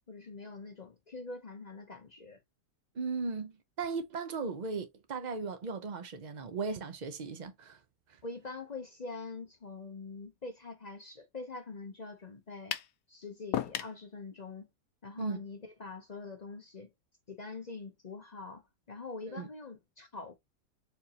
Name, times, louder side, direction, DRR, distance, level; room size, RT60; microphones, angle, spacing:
voice 1, 0.1-2.4 8.2-12.8 13.1-14.7 15.0-16.9 17.3-18.6 18.9-20.3, left 3 dB, 45° left, 0.5 m, -44 dB
voice 2, 2.9-7.8 15.2-15.4 19.3-19.5, right 4 dB, 55° right, 0.4 m, -37 dB
sound 1, 12.7-13.0 13.5-14.0, left 12 dB, 80° left, 1.2 m, -34 dB
4.5 x 3.6 x 2.9 m
omnidirectional pair, 1.8 m